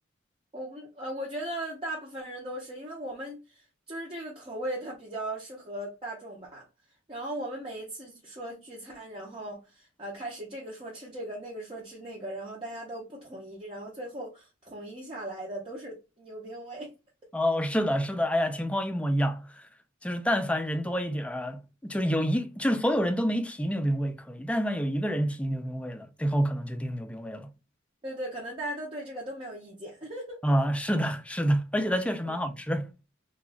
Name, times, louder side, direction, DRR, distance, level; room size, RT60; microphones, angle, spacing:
voice 1, 0.5-6.6 7.1-16.9 28.0-30.4 32.2-32.4, right 1 dB, 25° right, 0.7 m, -38 dB
voice 2, 17.3-19.7 20.0-27.5 30.4-32.9, equal, 5° left, 0.3 m, -28 dB
2.9 x 2.3 x 3.3 m
head